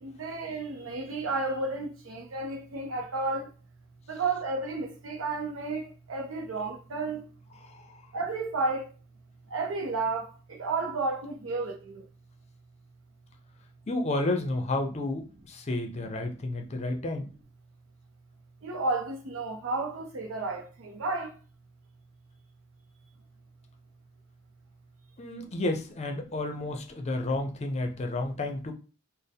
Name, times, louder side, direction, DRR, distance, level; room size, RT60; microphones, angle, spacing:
voice 1, 0.0-3.5 4.1-7.2 8.1-8.9 9.5-12.0 18.6-21.3, right 3 dB, 75° right, 0.6 m, -32 dB
voice 2, 7.6-8.1 13.9-17.3 25.2-28.7, left 2 dB, 35° left, 0.5 m, -31 dB
4.3 x 2.0 x 3.5 m
head